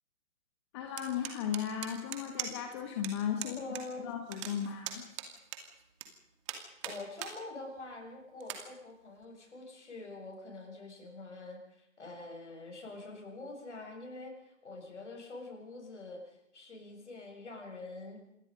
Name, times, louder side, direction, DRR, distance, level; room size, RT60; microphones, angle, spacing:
voice 1, 0.7-3.6 4.0-5.0, left 9 dB, 20° left, 4 dB, 1.6 m, -36 dB
sound 1, 1.0-2.7 3.0-3.1 3.4-3.8 4.1-6.1 6.5-7.3 7.8-7.9 8.4-8.6, right 11 dB, 20° right, 2.3 m, -40 dB
voice 2, 3.4-4.1 6.8-18.2, left 2 dB, 55° left, 2 dB, 7.5 m, -45 dB
27.0 x 21.5 x 5.4 m, 0.88 s
figure-of-eight pair, 140°, 41 cm